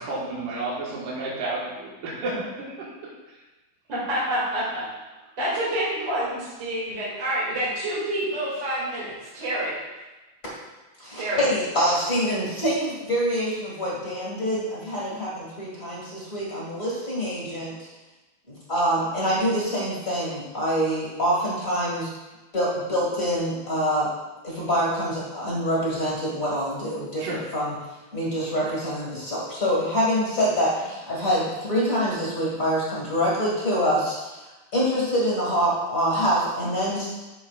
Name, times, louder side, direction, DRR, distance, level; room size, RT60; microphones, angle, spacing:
voice 1, 0.0-2.9 27.2-27.4, right 2 dB, 65° right, -6 dB, 2.9 m, -31 dB
voice 2, 3.9-4.8 5.4-9.7 11.2-11.4, right 1 dB, 35° right, -10 dB, 2.5 m, -27 dB
voice 3, 11.0-17.9 18.5-22.1 22.5-24.1 24.4-27.8 28.1-37.1, equal, 35° left, -6 dB, 1.3 m, -25 dB
12.5 x 5.9 x 2.4 m, 1.1 s
omnidirectional pair, 4.3 m